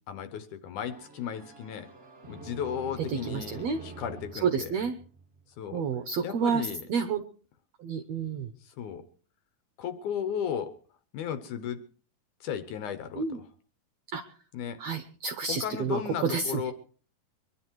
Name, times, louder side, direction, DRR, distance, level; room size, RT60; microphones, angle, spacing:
voice 1, 0.1-1.9 2.3-4.7 5.6-5.8 6.2-6.8 8.6-9.0 9.8-10.8 11.1-11.8 12.4-13.4 14.5-14.8 15.5-16.7, left 8 dB, 70° left, 10 dB, 2.1 m, -35 dB
sound 1, 0.9-5.6, right 3 dB, 60° right, 0.6 m, -47 dB
voice 2, 3.2-3.8 4.4-5.0 5.7-7.2 7.8-8.5 13.2-13.4 14.1-14.2 14.8-16.7, right 5 dB, 75° right, 8 dB, 1.5 m, -30 dB
24.0 x 11.0 x 4.6 m, 0.42 s
omnidirectional pair, 4.2 m